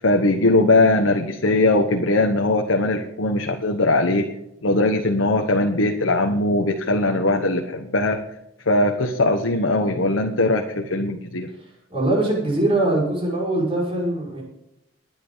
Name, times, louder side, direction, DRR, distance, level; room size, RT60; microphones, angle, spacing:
voice 1, 0.0-4.3 4.6-8.2 8.7-11.5, left 2 dB, 80° left, 3 dB, 1.2 m, -20 dB
voice 2, 11.9-14.4, right 1 dB, 25° right, -3 dB, 5.8 m, -22 dB
20.5 x 9.4 x 4.0 m, 0.83 s
head